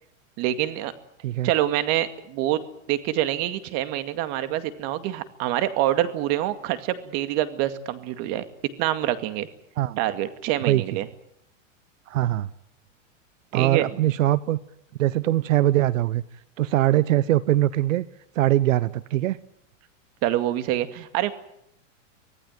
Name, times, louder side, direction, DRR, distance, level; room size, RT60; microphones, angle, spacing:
voice 1, 0.4-0.9 1.4-2.6 2.9-8.4 8.8-9.5 10.0-11.1 13.5-13.9 20.2-21.3, right 13 dB, 40° right, 10 dB, 2.2 m, -26 dB
voice 2, 12.1-12.5 13.5-14.6 15.0-16.2 16.6-18.1 18.3-19.4, right 14 dB, 80° right, 18 dB, 1.0 m, -22 dB
25.5 x 18.0 x 9.2 m, 0.77 s
supercardioid pair, 150°, 38 cm